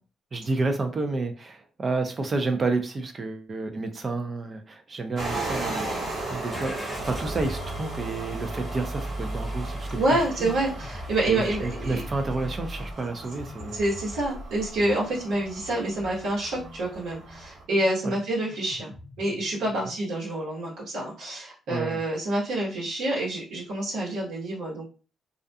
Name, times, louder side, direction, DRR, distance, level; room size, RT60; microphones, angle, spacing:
voice 1, 0.3-10.5 11.3-13.9 18.0-18.2 21.7-22.0, right 3 dB, 35° right, 6 dB, 0.5 m, -30 dB
sound 1, 5.2-17.6, right 2 dB, 55° right, 1.1 m, -37 dB
Car / Engine starting, 6.5-12.9, right 1 dB, 5° left, 0.8 m, -36 dB
sound 2, 7.2-20.0, left 2 dB, 45° left, 0.4 m, -46 dB
voice 2, 10.0-12.0 13.7-18.9 19.2-24.8, right 1 dB, 80° right, -5 dB, 1.1 m, -27 dB
2.4 x 2.2 x 2.6 m, 0.34 s
cardioid pair, 90°, 0 cm